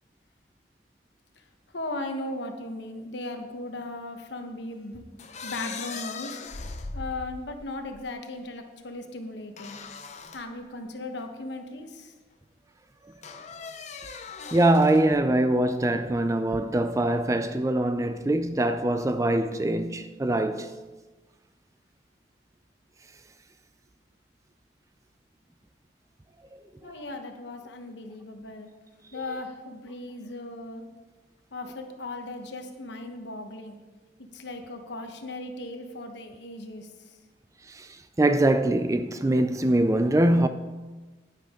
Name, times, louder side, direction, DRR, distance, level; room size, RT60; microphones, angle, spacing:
voice 1, 1.7-5.0 5.4-6.4 6.9-9.8 10.3-12.1 26.8-28.7 29.1-30.8 31.5-33.8 34.3-37.2, left 2 dB, 65° left, 1.1 m, -37 dB
sound 1, 5.2-8.0 9.6-10.5 11.2-11.3 13.2-15.1, left 4 dB, 35° left, 0.6 m, -39 dB
voice 2, 14.5-20.7 37.7-37.9 38.2-40.5, right 1 dB, 15° right, 0.3 m, -23 dB
10.5 x 10.5 x 3.7 m
head